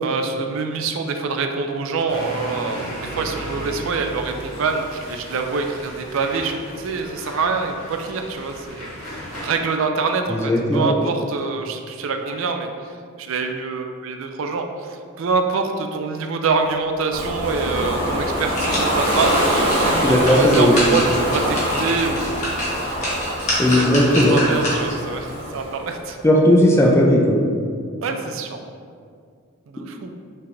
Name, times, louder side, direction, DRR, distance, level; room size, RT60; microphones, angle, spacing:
voice 1, 0.0-22.4 22.8-23.3 23.7-26.2 28.0-28.6 29.7-30.1, right 4 dB, 65° right, 5 dB, 0.4 m, -25 dB
sound 1, 2.1-9.5, equal, 75° left, 1.4 m, -35 dB
voice 2, 10.3-10.9 20.0-20.8 23.6-24.4 26.2-27.4, left 1 dB, 10° left, -1 dB, 0.4 m, -16 dB
Ocean, 17.1-25.9, equal, 25° right, 1.4 m, -24 dB
sound 2, 18.5-25.0 25.5-25.6, equal, 35° left, 1.1 m, -27 dB
5.5 x 3.3 x 2.5 m, 2.2 s
head